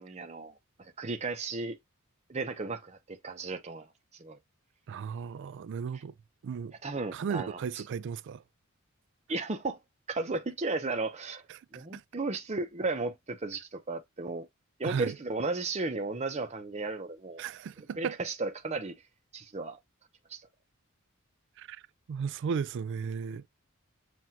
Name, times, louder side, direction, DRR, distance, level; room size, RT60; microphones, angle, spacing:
voice 1, 0.0-1.8 2.3-3.9 4.2-4.4 6.8-7.6 9.3-9.8 10.1-11.4 11.7-14.5 14.8-17.4 18.0-19.0 19.3-19.8 20.3-20.4, right 3 dB, 30° right, 0.7 m, -34 dB
voice 2, 4.9-6.1 6.4-6.7 7.1-8.4 11.5-11.6 11.9-12.0 14.8-15.2 17.4-18.2 21.6-21.8 22.1-23.4, right 6 dB, 55° right, 0.3 m, -35 dB
7.5 x 2.5 x 2.8 m
head